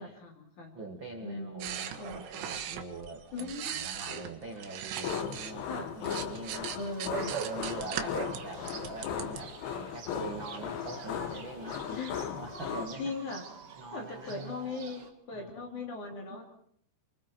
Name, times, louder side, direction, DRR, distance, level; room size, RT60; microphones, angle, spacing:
voice 1, 0.0-0.8 1.2-2.4 3.3-3.8 4.1-4.2 5.7-5.9 6.7-7.4 7.9-8.1 11.9-12.4 13.0-13.4 13.9-16.4, left 3 dB, 45° left, 2 dB, 4.1 m, -39 dB
voice 2, 0.7-6.7 7.3-11.8 12.3-13.1 13.8-14.6 15.3-15.9 16.3-16.4, right 2 dB, 45° right, 3 dB, 1.6 m, -44 dB
sound 1, 1.6-5.5 5.9-9.4, right 10 dB, 90° right, 3.9 m, -40 dB
sound 2, 5.0-12.9, left 9 dB, 90° left, 3.8 m, -37 dB
sound 3, 6.8-15.1, right 7 dB, 60° right, 1.5 m, -43 dB
29.0 x 24.0 x 4.6 m, 0.66 s
omnidirectional pair, 5.3 m